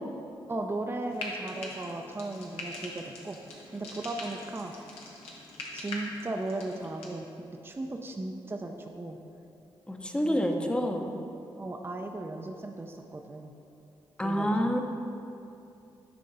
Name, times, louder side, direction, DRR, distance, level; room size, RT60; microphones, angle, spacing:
voice 1, 0.5-3.4 3.7-4.7 5.7-9.2 10.2-10.8 11.6-13.5 14.2-14.8, right 2 dB, 25° right, 3 dB, 0.5 m, -36 dB
Frying (food), 1.1-7.1, left 2 dB, 90° left, 0.9 m, -42 dB
voice 2, 9.9-11.1 14.2-14.8, equal, 10° left, 3 dB, 0.7 m, -28 dB
10.0 x 3.7 x 4.0 m, 2.7 s
supercardioid pair, 55°, 10 cm